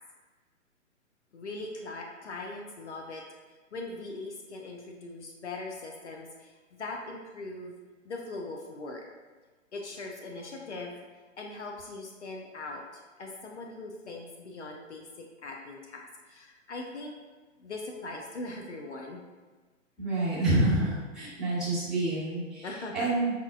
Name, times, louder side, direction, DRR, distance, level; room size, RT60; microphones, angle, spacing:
voice 1, 1.3-7.8 8.0-9.0 9.7-10.9 11.4-17.2 17.6-19.2 22.6-23.1, left 2 dB, 60° left, 1 dB, 0.5 m, -40 dB
voice 2, 20.0-22.7 22.9-23.3, right 2 dB, ahead, -14 dB, 0.9 m, -27 dB
5.5 x 2.1 x 2.3 m, 1.3 s
figure-of-eight pair, 120°, 39 cm